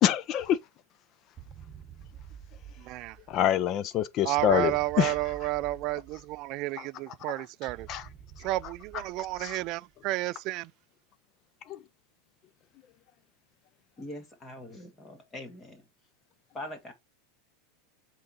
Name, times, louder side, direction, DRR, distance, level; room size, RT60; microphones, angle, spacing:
voice 1, 0.0-0.6 3.3-5.5 6.8-7.5 7.9-8.1 8.4-8.5 9.4-9.6 11.7-11.8, left 10 dB, 35° left, 0.5 m, -27 dB
sound 1, 1.4-3.7 4.4-6.7 7.7-9.9, right 8 dB, 20° right, 4.7 m, -49 dB
voice 2, 2.8-3.2 4.2-7.9 8.4-10.7, right 18 dB, 45° right, 0.3 m, -31 dB
voice 3, 14.0-15.9 16.5-16.9, left 1 dB, 20° left, 1.9 m, -42 dB
9.5 x 3.8 x 4.1 m
supercardioid pair, 145°, 0 cm